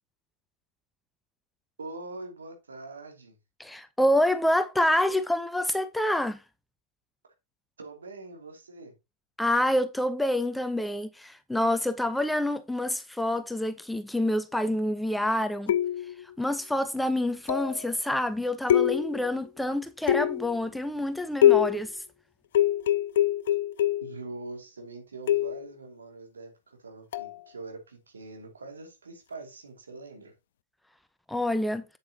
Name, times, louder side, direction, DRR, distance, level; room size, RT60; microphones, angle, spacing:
voice 1, 1.8-3.4 7.8-8.9 24.0-30.3, right 3 dB, 70° right, 2.6 m, -43 dB
voice 2, 3.6-6.4 9.4-15.7 16.4-22.0 31.3-31.8, left 1 dB, 5° left, 0.7 m, -27 dB
sound 1, 15.7-16.2 17.5-17.8 18.7-19.3 20.1-20.6 21.4-21.9 22.5-24.2 25.3-25.7 27.1-27.4, left 12 dB, 60° left, 0.4 m, -24 dB
8.3 x 7.8 x 2.8 m
figure-of-eight pair, 90°, 0 cm